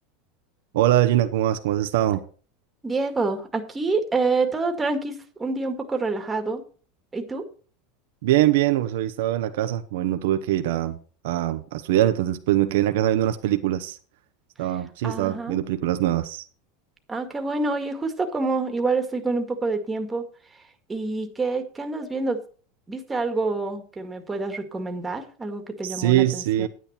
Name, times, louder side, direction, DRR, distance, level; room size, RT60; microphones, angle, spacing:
voice 1, 0.7-2.2 8.2-11.0 11.2-14.0 14.6-16.5 25.8-26.7, right 13 dB, 75° right, 1.0 m, -22 dB
voice 2, 2.8-6.6 7.1-7.4 15.0-15.6 17.1-20.2 20.9-22.4 22.9-26.7, right 3 dB, 15° right, 1.9 m, -27 dB
10.0 x 9.4 x 4.3 m
supercardioid pair, 120°, 0 cm